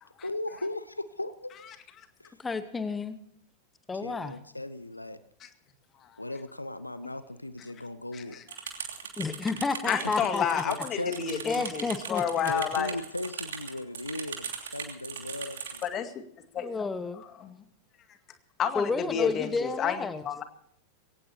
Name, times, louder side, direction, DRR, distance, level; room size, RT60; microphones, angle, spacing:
voice 1, 0.2-1.7 2.2-2.4 3.9-5.2 6.2-8.4 10.0-10.1 10.6-11.6 12.5-15.8, left 1 dB, 85° left, 14 dB, 0.8 m, -37 dB
voice 2, 2.4-3.2 3.9-4.4 9.2-10.6 10.9-11.0 11.5-12.5 16.6-17.2 18.7-20.2, left 4 dB, 15° left, 12 dB, 1.1 m, -31 dB
voice 3, 8.1-8.4 9.9-13.0 15.8-16.2 16.5-16.7 17.4-17.5 18.6-20.4, left 8 dB, 30° left, 8 dB, 2.1 m, -30 dB
sound 1, 8.5-15.9, right 7 dB, 65° right, 3.1 m, -39 dB
23.5 x 17.5 x 2.9 m, 0.67 s
figure-of-eight pair, 90°, 0 cm